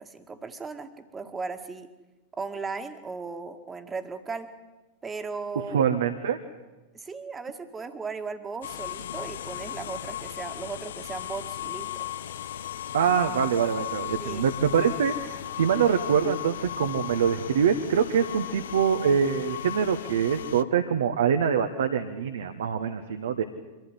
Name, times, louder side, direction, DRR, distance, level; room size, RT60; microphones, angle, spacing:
voice 1, 0.0-1.9 2.3-4.5 5.0-5.8 6.9-12.1 14.2-14.5, right 4 dB, 15° right, 8 dB, 2.0 m, -37 dB
voice 2, 5.7-6.4 12.9-23.4, right 7 dB, 65° right, 7 dB, 1.4 m, -24 dB
sound 1, 8.6-20.6, left 12 dB, 60° left, 0.9 m, -36 dB
24.5 x 15.5 x 9.9 m, 1.1 s
figure-of-eight pair, 90°, 0 cm